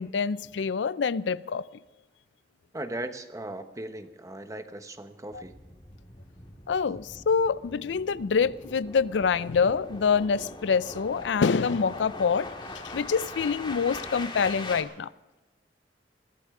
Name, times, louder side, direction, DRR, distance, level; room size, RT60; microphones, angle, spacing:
voice 1, 0.0-1.7 5.3-5.4 6.7-15.1, left 5 dB, 90° left, 18 dB, 0.4 m, -26 dB
voice 2, 2.7-5.5, right 1 dB, 20° right, 8 dB, 1.1 m, -38 dB
sound 1, 5.3-14.8, left 2 dB, 30° left, 1.9 m, -42 dB
22.0 x 15.0 x 3.7 m, 1.1 s
head